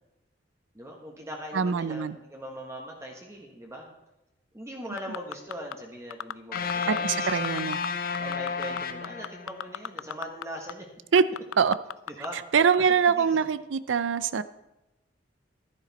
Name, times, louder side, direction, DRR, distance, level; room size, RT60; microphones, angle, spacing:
voice 1, 0.7-3.9 4.5-7.3 8.2-10.9 12.1-12.4 13.1-13.3, equal, 15° right, 0 dB, 1.3 m, -40 dB
voice 2, 1.5-2.2 6.9-7.8 11.1-11.2 11.6-11.8 12.5-14.4, right 6 dB, 80° right, 15 dB, 0.5 m, -23 dB
sound 1, 5.0-5.7 6.1-7.0 7.3-7.9 8.1-10.4 10.7-10.8 11.2-12.3 12.7-12.8, left 10 dB, 90° left, 0.3 m, -35 dB
sound 2, 6.5-9.8, left 5 dB, 55° left, 0.7 m, -32 dB
12.0 x 10.5 x 4.1 m, 0.92 s
head